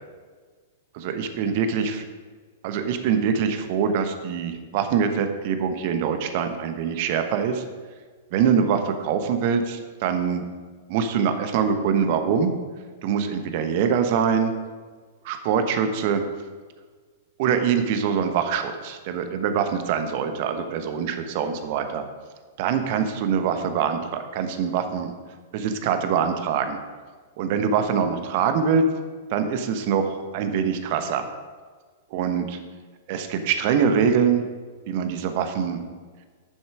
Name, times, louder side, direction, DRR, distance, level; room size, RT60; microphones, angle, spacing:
voice 1, 1.0-2.0 2.6-7.6 8.3-10.5 10.9-12.5 13.0-14.5 15.2-16.2 17.4-22.0 22.6-25.1 25.5-26.8 27.4-28.8 29.3-31.2 32.1-32.6 33.1-34.4 34.9-35.8, right 7 dB, 45° right, 8 dB, 1.1 m, -24 dB
9.5 x 7.3 x 4.9 m, 1.5 s
figure-of-eight pair, 100°, 0 cm